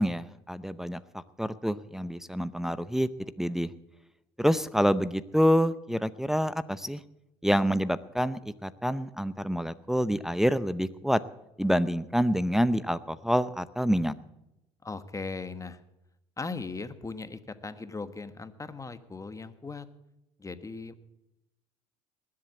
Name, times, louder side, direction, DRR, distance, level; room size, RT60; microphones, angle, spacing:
voice 1, 0.0-3.1 3.4-3.7 4.4-7.0 7.4-11.2 11.6-14.1, equal, 5° right, 13 dB, 0.7 m, -27 dB
voice 2, 14.8-15.8 16.4-19.9 20.4-20.9, left 4 dB, 20° left, 11 dB, 1.3 m, -38 dB
20.0 x 7.8 x 8.3 m, 0.91 s
supercardioid pair, 75°, 16 cm